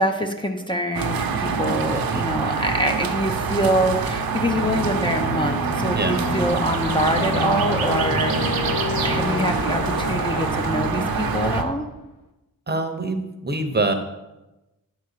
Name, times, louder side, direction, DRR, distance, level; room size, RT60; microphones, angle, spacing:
voice 1, 0.0-8.7 9.0-11.9, equal, 15° left, 3 dB, 0.7 m, -25 dB
sound 1, 0.9-11.6, right 5 dB, 80° right, 0.8 m, -25 dB
Aircraft, 4.6-11.9, left 3 dB, 55° left, 1.1 m, -29 dB
voice 2, 12.7-13.9, right 2 dB, 30° right, 6 dB, 0.9 m, -24 dB
9.6 x 4.1 x 6.5 m, 1.0 s
wide cardioid pair, 85°, 35 cm